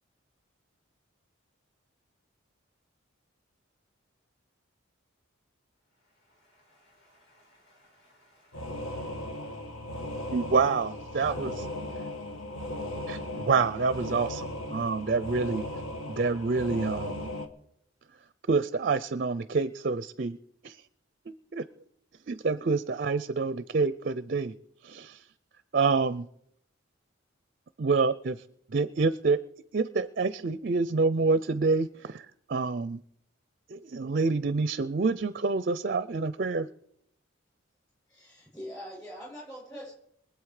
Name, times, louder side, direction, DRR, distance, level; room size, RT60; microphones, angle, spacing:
voice 1, 5.9-9.7, left 1 dB, 55° left, 6.8 m, -65 dB
sound 1, 8.5-17.5, left 1 dB, 80° left, 1.5 m, -37 dB
voice 2, 10.3-11.7 13.1-15.7 16.1-17.3 18.5-20.4 20.6-20.8 21.3-21.6 22.3-24.5 24.8-25.3 25.7-26.3 27.8-28.4 28.7-29.4 29.7-33.0 33.7-36.7, right 4 dB, 45° right, 0.4 m, -27 dB
voice 3, 38.1-40.0, equal, 15° left, 7.4 m, -43 dB
23.5 x 8.2 x 4.9 m
head